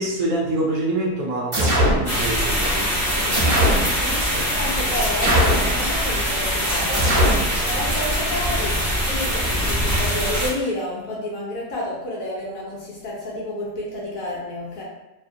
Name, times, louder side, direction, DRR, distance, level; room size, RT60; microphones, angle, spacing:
voice 1, 0.0-2.9 4.2-4.5, right 2 dB, 65° right, -3 dB, 0.8 m, -26 dB
sound 1, 1.5-2.0 3.3-3.9 5.2-5.7 6.9-7.4, equal, 40° right, 1.0 m, -19 dB
sound 2, 2.0-10.5, equal, ahead, 0.7 m, -23 dB
voice 2, 3.0-7.1 7.6-14.8, left 1 dB, 65° left, -4 dB, 0.9 m, -30 dB
2.8 x 2.4 x 2.5 m, 0.96 s
omnidirectional pair, 1.7 m